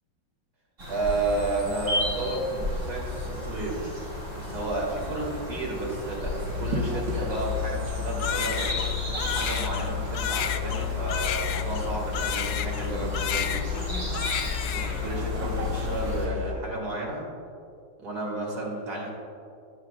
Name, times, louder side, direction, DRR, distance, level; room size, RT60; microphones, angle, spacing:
sound 1, 0.8-16.3, left 1 dB, 45° right, 2.8 m, -34 dB
voice 1, 0.9-3.9 4.2-8.8 9.2-13.6 14.7-17.3 18.0-19.1, right 2 dB, 60° right, -3 dB, 2.8 m, -32 dB
sound 2, 6.4-16.5, left 7 dB, 85° right, 1.9 m, -32 dB
Crying sobbing, 8.2-12.9 13.1-13.9 14.1-15.1, left 9 dB, 70° left, 1.1 m, -31 dB
15.5 x 10.5 x 2.4 m, 2.5 s
omnidirectional pair, 1.9 m